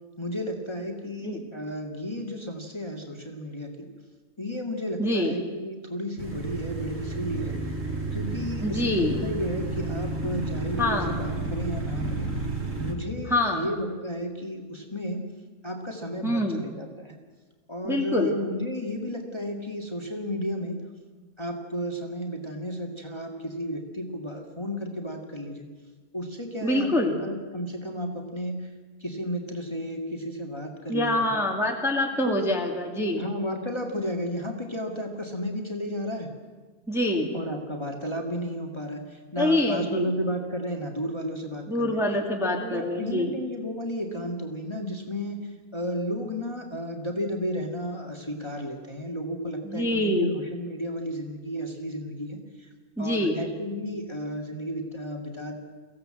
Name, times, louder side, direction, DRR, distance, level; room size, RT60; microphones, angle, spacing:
voice 1, 0.2-3.9 4.4-7.6 8.1-12.3 12.8-15.2 15.6-17.2 17.7-20.8 21.4-25.7 26.1-26.9 27.2-28.7 29.0-31.4 32.2-32.4 33.2-36.3 37.3-42.0 42.4-52.7 53.0-55.5, equal, 15° left, 2 dB, 2.1 m, -33 dB
voice 2, 5.0-5.3 8.6-9.2 10.8-11.2 13.3-13.7 16.2-16.6 17.8-18.3 26.6-27.2 30.9-33.2 36.9-37.3 39.4-40.1 41.7-43.3 49.6-50.4 53.0-53.4, left 1 dB, ahead, 1 dB, 1.9 m, -25 dB
sound 1, 6.2-12.9, right 2 dB, 50° right, 3.6 m, -31 dB
23.0 x 16.0 x 7.8 m, 1.4 s
omnidirectional pair, 1.7 m